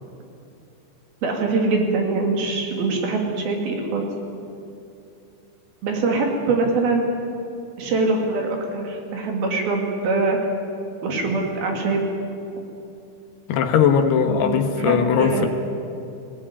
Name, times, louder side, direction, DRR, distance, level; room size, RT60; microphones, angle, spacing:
voice 1, 1.2-4.1 5.8-7.0 7.8-10.4 11.0-12.1 14.3-15.5, right 3 dB, 60° right, 2 dB, 4.3 m, -23 dB
voice 2, 13.5-15.5, left 7 dB, 75° left, 6 dB, 3.3 m, -19 dB
20.5 x 18.0 x 9.8 m, 2.7 s
omnidirectional pair, 5.0 m